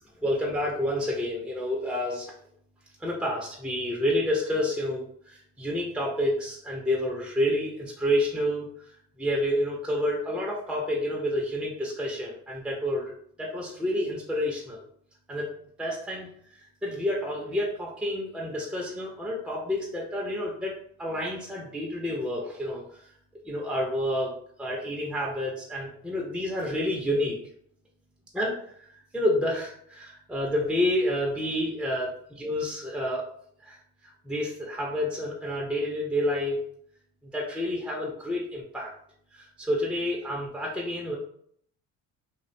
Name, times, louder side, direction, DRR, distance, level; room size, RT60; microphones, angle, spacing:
voice 1, 0.2-2.3 3.0-8.7 9.2-13.1 13.4-14.8 15.3-15.5 15.8-16.3 16.8-23.0 23.5-27.4 28.3-28.9 29.1-33.2 33.6-33.8 34.2-36.6 37.3-38.9 39.3-41.2, left 1 dB, ahead, -3 dB, 0.5 m, -29 dB
2.4 x 2.2 x 2.6 m, 0.65 s
supercardioid pair, 70°, 33 cm